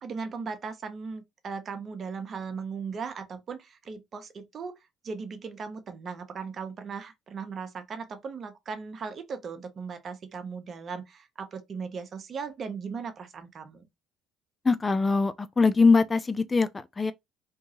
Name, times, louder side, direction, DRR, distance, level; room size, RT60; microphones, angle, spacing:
voice 1, 0.0-4.8 5.0-13.9, right 5 dB, 45° right, 0.7 m, -38 dB
voice 2, 14.6-17.1, left 4 dB, 25° left, 0.3 m, -22 dB
2.8 x 2.2 x 2.8 m
hypercardioid pair, 60°, 0 cm